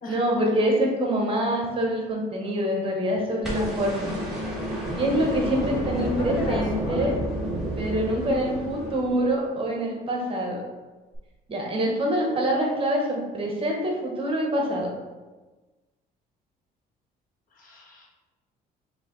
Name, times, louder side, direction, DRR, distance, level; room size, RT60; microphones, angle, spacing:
voice 1, 0.1-4.1 4.9-7.1 7.8-10.6 11.5-14.9, equal, 30° right, 0 dB, 1.0 m, -25 dB
sound 1, 3.4-9.6 11.1-11.2, right 1 dB, ahead, 1.4 m, -30 dB
voice 2, 6.2-7.3 17.5-18.1, left 1 dB, 55° left, -1 dB, 1.1 m, -36 dB
4.9 x 2.6 x 3.8 m, 1.2 s
cardioid pair, 110°, 17 cm